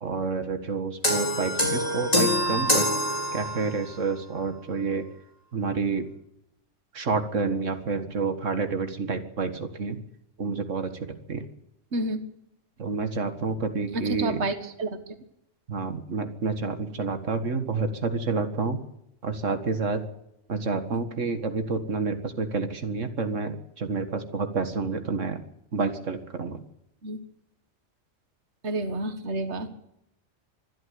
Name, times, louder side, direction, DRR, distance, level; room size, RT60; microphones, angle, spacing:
voice 1, 0.0-2.9 3.3-5.1 5.5-6.1 6.9-10.0 10.4-11.5 12.8-14.5 15.7-18.8 19.2-20.0 20.5-25.4 25.7-26.6, right 4 dB, 85° right, 8 dB, 2.1 m, -29 dB
sound 1, 1.0-3.9, equal, 30° left, 4.6 m, -25 dB
voice 2, 11.9-12.2 13.9-15.0 27.0-27.2 28.6-29.7, right 2 dB, 65° right, 9 dB, 2.0 m, -29 dB
24.5 x 12.5 x 9.4 m, 0.80 s
omnidirectional pair, 1.3 m